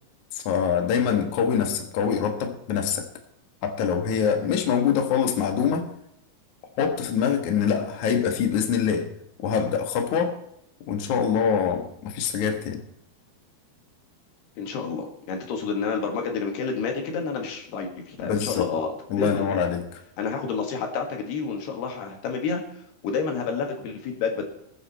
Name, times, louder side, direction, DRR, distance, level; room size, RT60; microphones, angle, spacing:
voice 1, 0.3-3.1 3.6-5.9 6.8-9.1 9.4-10.4 10.9-12.8 18.2-18.7 19.1-19.8, left 7 dB, 60° left, 4 dB, 2.5 m, -24 dB
voice 2, 14.6-18.9 19.2-19.5 20.2-22.6 23.0-24.5, left 5 dB, 80° left, 3 dB, 4.0 m, -29 dB
21.0 x 8.4 x 4.3 m, 0.78 s
omnidirectional pair, 4.6 m